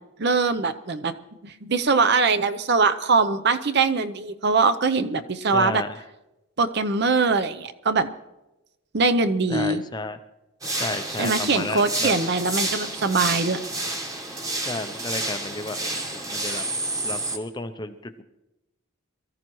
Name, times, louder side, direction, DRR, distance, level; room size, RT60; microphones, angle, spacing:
voice 1, 0.2-1.1 1.4-5.8 6.6-8.1 8.9-9.8 11.2-13.6, right 4 dB, 50° right, 11 dB, 0.7 m, -22 dB
voice 2, 5.5-6.0 9.5-10.2 10.8-12.1 14.6-16.6 17.0-18.2, left 2 dB, 20° left, 9 dB, 0.5 m, -32 dB
sound 1, 10.6-17.4, right 2 dB, 15° right, 1.2 m, -29 dB
23.0 x 14.0 x 3.1 m, 0.98 s
head